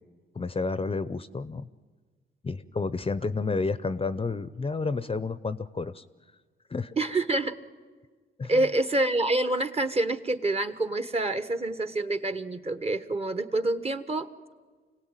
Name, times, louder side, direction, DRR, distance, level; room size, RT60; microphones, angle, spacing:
voice 1, 0.3-1.7 2.4-6.0 6.7-6.9 8.4-8.7, left 4 dB, 25° left, 15 dB, 0.7 m, -30 dB
voice 2, 7.0-7.5 8.5-14.3, right 2 dB, 30° right, 11 dB, 1.3 m, -27 dB
25.5 x 17.0 x 9.1 m, 1.5 s
cardioid pair, 70°, 21 cm